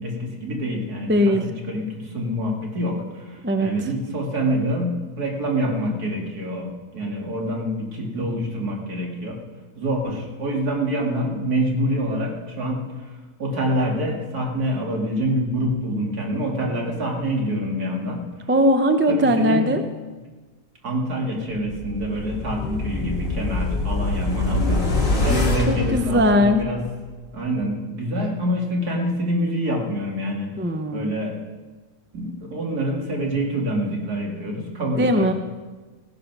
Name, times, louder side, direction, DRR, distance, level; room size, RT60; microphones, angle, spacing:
voice 1, 0.0-9.4 9.8-13.1 13.4-18.2 19.1-19.7 20.8-26.8 27.3-30.5 30.9-31.4 32.1-35.3, equal, 65° right, 0 dB, 2.9 m, -26 dB
voice 2, 1.1-1.4 3.4-3.7 18.5-19.8 25.2-26.6 30.6-31.1 35.0-35.3, equal, 15° right, 7 dB, 0.4 m, -20 dB
sound 1, 21.7-26.9 27.2-27.3, left 2 dB, 30° left, 2.1 m, -25 dB
16.0 x 10.5 x 6.2 m, 1.3 s
omnidirectional pair, 1.8 m